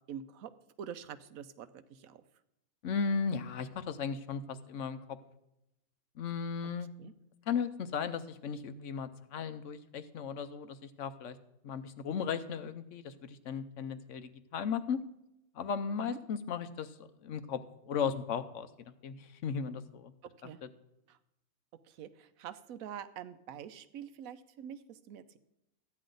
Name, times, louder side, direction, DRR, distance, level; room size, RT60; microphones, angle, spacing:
voice 1, 0.1-0.5 0.8-2.2 7.0-7.1 16.0-16.2 20.4-20.6 21.1-21.2 21.8-25.4, right 9 dB, 75° right, 12 dB, 1.1 m, -46 dB
voice 2, 2.8-5.0 6.2-6.9 7.5-11.4 11.6-15.0 15.6-16.9 17.2-17.6 17.8-18.7 19.0-20.1, left 6 dB, 60° left, 12 dB, 1.0 m, -36 dB
14.0 x 9.7 x 3.9 m, 0.86 s
omnidirectional pair, 1.5 m